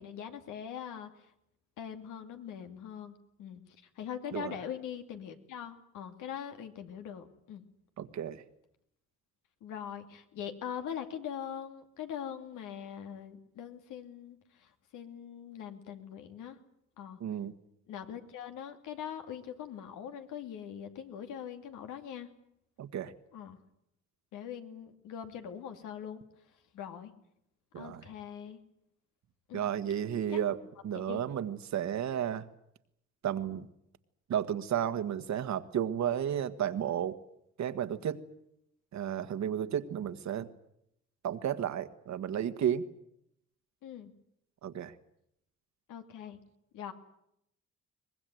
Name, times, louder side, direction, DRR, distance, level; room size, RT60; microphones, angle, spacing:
voice 1, 0.0-1.3 1.8-7.6 9.6-16.6 17.0-17.2 17.9-22.3 23.3-23.6 24.3-26.2 26.5-27.1 27.7-28.6 29.5-29.6 30.3-30.4 30.9-31.3 43.8-44.1 45.9-46.4 46.7-46.9, left 9 dB, 85° left, 7 dB, 2.6 m, -42 dB
voice 2, 8.0-8.4 17.2-17.5 22.8-23.1 27.7-28.0 29.5-30.6 30.8-32.5 33.2-33.7 34.3-37.2 37.6-38.2 38.9-40.5 41.2-42.8 44.6-44.9, right 9 dB, 65° right, 10 dB, 1.6 m, -32 dB
23.0 x 20.0 x 9.3 m, 0.77 s
cardioid pair, 90°, 30 cm